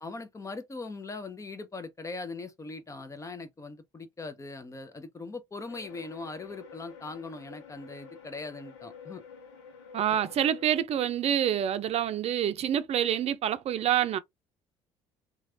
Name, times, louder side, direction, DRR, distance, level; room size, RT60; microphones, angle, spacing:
voice 1, 0.0-9.2, left 3 dB, 20° left, 0.8 m, -40 dB
sound 1, 5.7-10.7, left 6 dB, 85° left, 0.8 m, -49 dB
voice 2, 9.9-14.2, right 10 dB, 50° right, 0.6 m, -27 dB
3.1 x 2.4 x 2.7 m
hypercardioid pair, 65°, 14 cm